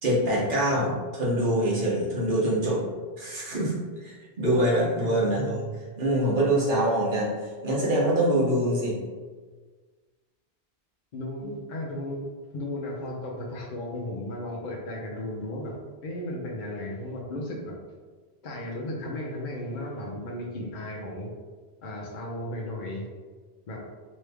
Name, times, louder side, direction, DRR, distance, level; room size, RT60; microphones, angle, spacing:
voice 1, 0.0-2.8 3.2-3.7 4.0-5.7 6.0-7.3 7.6-9.0, right 1 dB, 55° right, -5 dB, 1.1 m, -24 dB
voice 2, 5.0-5.3 11.1-12.2 12.5-15.8 16.0-17.7 18.4-21.3 21.8-23.1 23.7-23.8, left 1 dB, 55° left, -2 dB, 0.6 m, -35 dB
3.1 x 2.6 x 3.3 m, 1.4 s
omnidirectional pair, 1.1 m